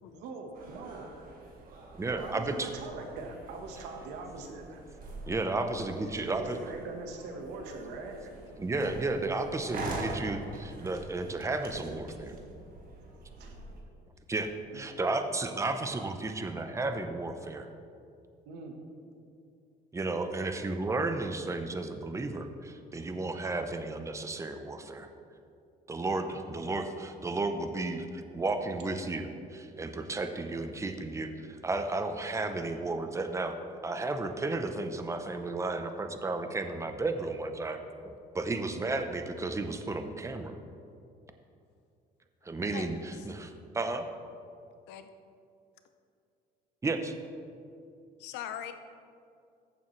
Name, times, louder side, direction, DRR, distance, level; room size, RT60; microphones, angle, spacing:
voice 1, 0.1-1.1 2.0-4.8 5.6-5.7 6.0-8.3 11.7-12.0 13.4-13.5 14.7-14.8 18.5-18.7 26.3-26.4, right 3 dB, 90° right, 3 dB, 1.3 m, -42 dB
sound 1, 0.5-13.8, right 2 dB, 60° right, 1.7 m, -44 dB
voice 2, 1.9-2.7 5.3-6.6 8.6-12.3 14.3-17.7 19.9-25.1 25.9-33.6 33.8-40.6 42.4-44.1 46.8-47.1, right 2 dB, 15° right, 7 dB, 0.7 m, -33 dB
voice 3, 42.7-43.0 44.9-45.1 46.8-46.9 48.2-48.7, left 10 dB, 90° left, 9 dB, 0.7 m, -41 dB
14.5 x 7.1 x 3.2 m, 2.5 s
cardioid pair, 110°, 17 cm